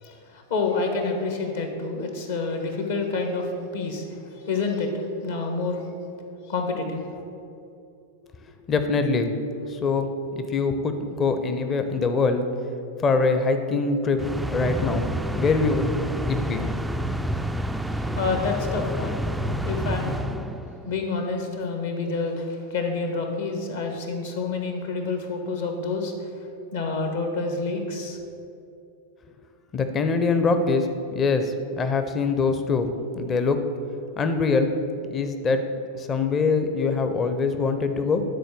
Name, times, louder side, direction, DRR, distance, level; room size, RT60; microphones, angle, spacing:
voice 1, 0.0-4.0 4.5-4.9 5.2-5.8 6.5-7.1 18.1-19.3 19.6-20.2 20.9-26.1 26.7-28.2, left 4 dB, 60° left, 4 dB, 1.3 m, -28 dB
voice 2, 8.7-9.3 9.7-12.5 13.0-14.2 14.5-15.1 15.3-15.9 16.3-16.6 29.7-32.9 33.2-33.6 34.2-34.7 35.1-35.6 35.9-38.2, left 4 dB, 25° left, 8 dB, 0.7 m, -23 dB
sound 1, 14.2-21.0, equal, 5° right, 0.3 m, -28 dB
10.5 x 4.4 x 6.7 m, 2.7 s
figure-of-eight pair, 90°, 0 cm